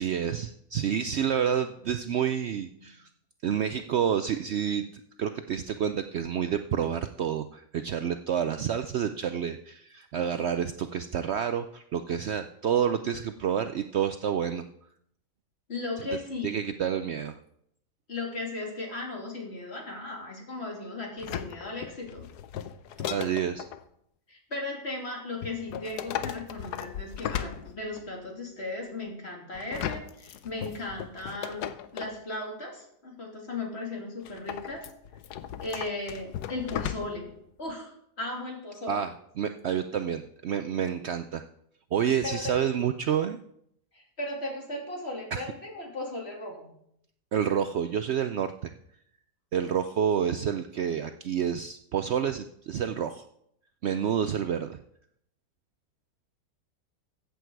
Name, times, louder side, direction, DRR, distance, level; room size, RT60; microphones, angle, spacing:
voice 1, 0.0-3.1 3.4-4.8 5.2-14.7 16.4-17.3 23.1-23.6 38.9-41.4 41.9-43.4 45.3-45.4 47.3-48.7 49.5-53.2 53.8-54.8, right 8 dB, 85° right, 9 dB, 0.5 m, -29 dB
voice 2, 15.7-16.6 18.1-22.3 24.3-31.7 31.9-34.9 35.6-37.3 37.6-39.1 42.2-42.6 43.9-46.7, left 2 dB, 40° left, 0 dB, 3.0 m, -36 dB
sound 1, 21.2-23.8 25.4-28.2 29.6-32.2 34.3-37.3 37.7-37.8, left 10 dB, 75° left, 1.2 m, -36 dB
14.0 x 8.3 x 4.6 m, 0.72 s
omnidirectional pair, 1.8 m